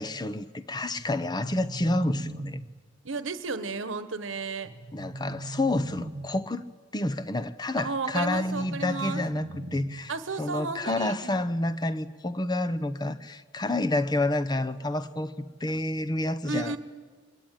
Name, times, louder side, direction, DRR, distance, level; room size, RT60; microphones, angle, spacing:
voice 1, 0.0-2.6 4.9-6.6 6.9-10.1 10.4-16.8, left 2 dB, 20° left, 0.8 m, -29 dB
sound 1, 1.0-3.0 4.6-6.5 8.3-10.3, right 2 dB, 55° right, 0.9 m, -40 dB
voice 2, 3.0-4.7 7.8-9.2 10.1-11.3 16.5-16.8, right 4 dB, 80° right, 1.2 m, -33 dB
24.5 x 21.0 x 9.2 m
head